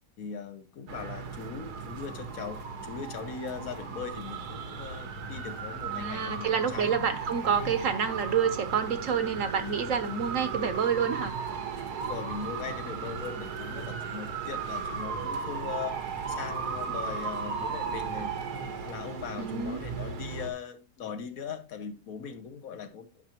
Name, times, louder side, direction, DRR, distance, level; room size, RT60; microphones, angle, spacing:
voice 1, 0.2-6.9 7.6-7.8 12.1-23.1, left 6 dB, 65° left, 1.3 m, -40 dB
sound 1, 0.9-20.5, right 5 dB, 90° right, 1.6 m, -36 dB
voice 2, 5.9-11.3 19.4-19.8, right 7 dB, 60° right, 1.1 m, -28 dB
10.0 x 6.0 x 2.9 m
omnidirectional pair, 1.6 m